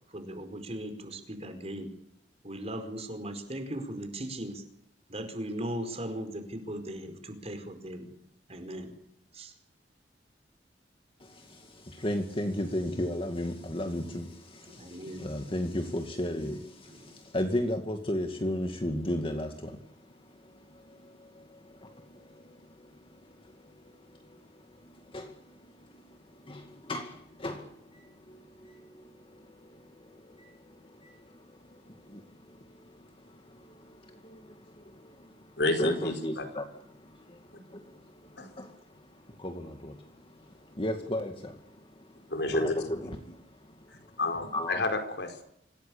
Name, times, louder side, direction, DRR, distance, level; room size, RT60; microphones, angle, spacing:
voice 1, 0.1-1.9 2.4-4.6 5.1-8.1 8.5-8.9 9.3-9.5 14.7-15.3 16.9-17.2, right 1 dB, 35° right, 7 dB, 4.8 m, -38 dB
voice 2, 11.2-44.2 44.5-44.8, left 1 dB, 30° left, 5 dB, 2.2 m, -37 dB
voice 3, 35.6-36.4 38.4-38.5 42.3-42.7 43.9-45.4, left 2 dB, 75° left, 6 dB, 4.8 m, -30 dB
26.0 x 17.5 x 8.6 m, 0.77 s
head